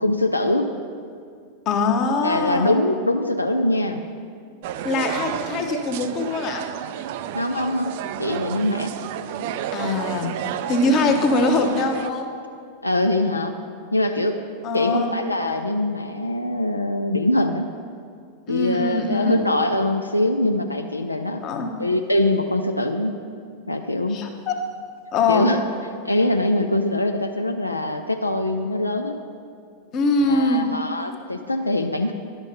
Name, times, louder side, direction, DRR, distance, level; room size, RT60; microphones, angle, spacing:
voice 1, 0.0-0.7 2.2-4.0 7.3-7.9 8.2-8.9 12.8-13.5 13.9-14.4 14.7-17.7 18.5-21.4 21.8-23.2 23.7-24.2 25.3-25.6 26.0-29.2 30.2-32.1, left 1 dB, 85° left, 5 dB, 0.4 m, -23 dB
voice 2, 1.7-2.8 4.8-6.7 9.7-10.3 10.7-12.3 14.6-15.1 18.5-19.5 21.4-21.7 24.1-24.6 25.1-25.5 29.9-30.7, left 3 dB, 35° left, 4 dB, 1.0 m, -22 dB
sound 1, 4.6-12.1, right 10 dB, 50° right, 0.3 m, -31 dB
11.0 x 5.2 x 5.2 m, 2.2 s
figure-of-eight pair, 90°, 0 cm